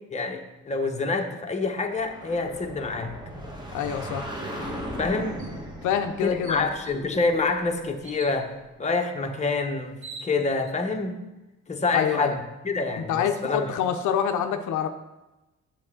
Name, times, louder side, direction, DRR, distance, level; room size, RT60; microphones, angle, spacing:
voice 1, 0.1-3.2 5.0-5.4 6.2-11.2 11.7-13.7, left 3 dB, 25° left, 3 dB, 0.9 m, -27 dB
sound 1, 1.9-8.5, equal, 15° right, 1.3 m, -38 dB
voice 2, 3.7-4.3 5.8-6.7 11.9-12.4 13.0-14.9, left 8 dB, 75° left, 6 dB, 0.6 m, -26 dB
sound 2, 5.4-5.6 6.0-6.1 6.4-7.0 8.0-8.4 9.5-9.6 9.9-10.7, right 3 dB, 70° right, 1.2 m, -43 dB
7.7 x 6.7 x 3.7 m, 1.0 s
cardioid pair, 90°, 30 cm